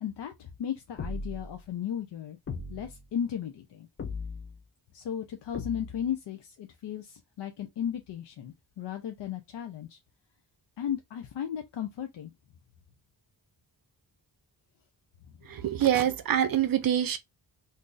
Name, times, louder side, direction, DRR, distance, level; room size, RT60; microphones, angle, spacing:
voice 1, 0.0-2.4 2.7-3.9 4.9-10.0 10.8-12.3, left 9 dB, 80° left, 0.6 m, -35 dB
sound 1, 1.0-1.6 2.5-3.1 4.0-4.6 5.5-6.1, left 3 dB, 35° left, 0.5 m, -37 dB
voice 2, 15.5-17.2, right 10 dB, 55° right, 0.5 m, -25 dB
3.8 x 2.6 x 2.4 m
wide cardioid pair, 170°, 41 cm